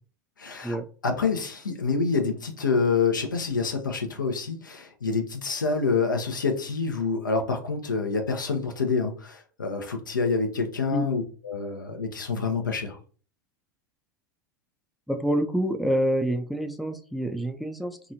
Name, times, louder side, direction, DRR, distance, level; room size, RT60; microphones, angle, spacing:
voice 1, 0.4-0.8 1.0-13.0, left 4 dB, 85° left, 0.6 m, -27 dB
voice 2, 15.1-18.1, right 1 dB, ahead, 0.3 m, -27 dB
2.9 x 2.3 x 2.6 m
figure-of-eight pair, 85°, 10 cm